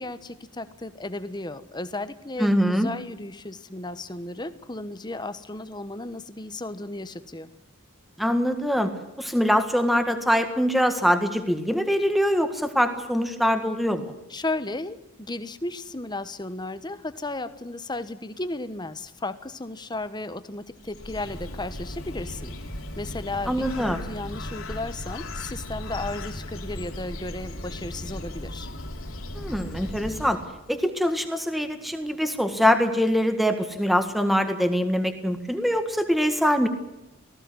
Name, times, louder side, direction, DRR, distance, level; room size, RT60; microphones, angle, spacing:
voice 1, 0.0-7.5 14.3-22.5 23.0-28.7, left 2 dB, 20° left, 12 dB, 1.2 m, -34 dB
voice 2, 2.4-2.9 8.2-8.9 9.2-14.1 23.5-24.0 29.3-30.4 30.7-36.7, equal, ahead, 7 dB, 1.8 m, -23 dB
Bird, 20.7-30.7, left 1 dB, 85° left, 3.9 m, -36 dB
19.0 x 15.5 x 9.7 m, 0.96 s
head